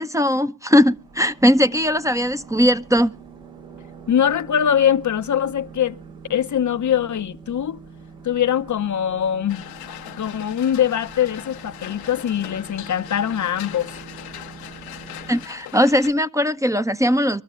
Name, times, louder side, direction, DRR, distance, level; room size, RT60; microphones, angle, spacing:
voice 1, 0.0-3.1 15.3-17.4, equal, 10° right, 0.8 m, -19 dB
sound 1, 0.9-15.5, right 5 dB, 80° right, 4.5 m, -43 dB
voice 2, 4.1-6.0 6.3-7.8 8.2-9.7 10.2-14.0, left 9 dB, 50° left, 0.8 m, -22 dB
sound 2, 9.5-16.1, left 12 dB, 85° left, 1.1 m, -39 dB
24.0 x 13.5 x 2.5 m
hypercardioid pair, 40°, 36 cm